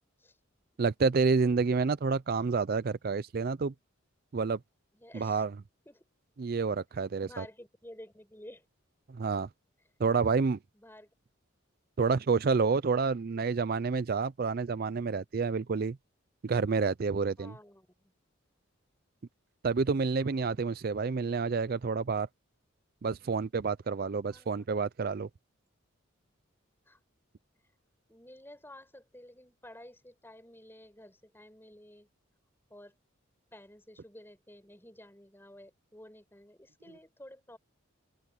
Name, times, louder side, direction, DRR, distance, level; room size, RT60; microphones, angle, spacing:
voice 1, 0.8-3.7 4.3-4.6 5.1-5.5 6.4-7.5 9.1-9.5 10.0-10.6 12.0-16.0 16.4-17.5 19.6-22.3 23.0-25.3, right 4 dB, 45° right, 0.4 m, -29 dB
voice 2, 4.9-5.5 5.9-6.0 7.2-8.7 10.7-11.1 17.4-17.9 20.2-20.6 24.3-24.7 26.9-27.0 28.1-32.1 32.7-32.9 33.5-37.6, left 1 dB, 10° left, 5.0 m, -52 dB
open air
head